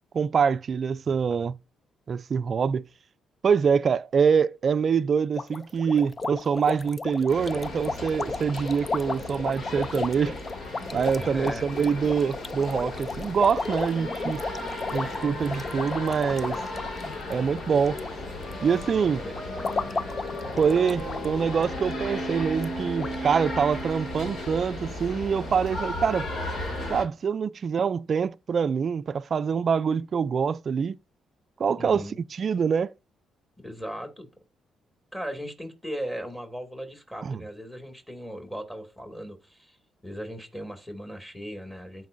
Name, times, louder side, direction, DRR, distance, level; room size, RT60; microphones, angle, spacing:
voice 1, 0.1-1.6 2.1-2.8 3.4-10.4 10.9-14.4 14.9-16.6 17.3-18.0 18.6-19.2 20.6-26.3 26.9-31.0 31.6-32.1 32.3-32.9 37.2-37.4, right 6 dB, 50° right, 0.4 m, -25 dB
sound 1, 5.4-18.1 18.4-18.8 19.3-21.2 21.5-21.6 22.0-22.1 22.6-22.7 23.0-23.2, left 3 dB, 30° left, 0.5 m, -34 dB
sound 2, 7.3-27.0, left 1 dB, 60° left, 2.4 m, -35 dB
voice 2, 11.2-11.6 19.0-19.8 31.8-32.2 33.6-34.3 35.1-39.8 40.0-42.1, equal, 10° left, 2.3 m, -38 dB
sound 3, 13.2-17.7 18.1-22.9, right 1 dB, 80° left, 3.3 m, -44 dB
13.5 x 4.6 x 2.6 m
cardioid pair, 90°, 0 cm